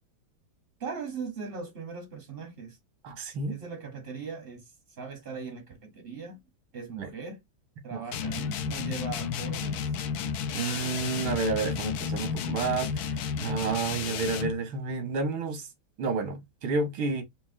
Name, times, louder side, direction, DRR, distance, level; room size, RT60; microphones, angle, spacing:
voice 1, 0.8-2.8 3.5-6.4 6.7-7.4 7.8-9.9, right 5 dB, 50° right, 0.7 m, -39 dB
voice 2, 3.0-3.6 7.0-7.1 7.9-8.0 10.5-13.1 13.4-15.7 16.0-17.2, right 4 dB, 90° right, 2.0 m, -30 dB
sound 1, 8.1-14.6, left 7 dB, 75° left, 0.8 m, -32 dB
5.3 x 2.8 x 2.5 m
omnidirectional pair, 2.2 m